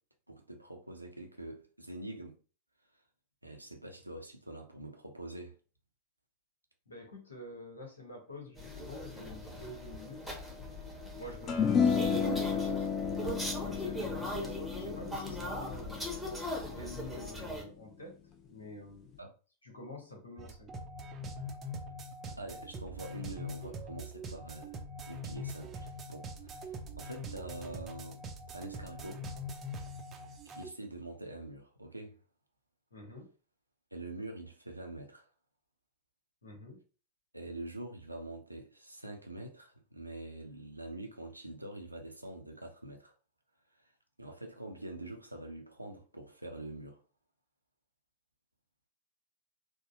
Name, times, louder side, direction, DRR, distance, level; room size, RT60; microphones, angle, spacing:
voice 1, 0.3-2.4 3.4-5.5 19.2-19.3 22.2-24.7 25.1-28.2 28.5-29.3 30.4-32.1 33.9-35.3 37.3-43.1 44.2-47.0, right 1 dB, 85° right, 0.6 m, -45 dB
voice 2, 6.9-10.3 10.7-10.9 11.2-16.1 16.6-18.2 18.4-19.2 19.6-20.7 32.9-33.3 36.4-36.8, left 1 dB, 75° left, 1.1 m, -48 dB
sound 1, 8.6-17.6, left 1 dB, ahead, 0.9 m, -39 dB
sound 2, 11.5-18.0, left 6 dB, 30° left, 0.5 m, -33 dB
sound 3, 20.4-30.7, equal, 25° right, 0.5 m, -43 dB
3.6 x 2.1 x 2.5 m
figure-of-eight pair, 90°, 0 cm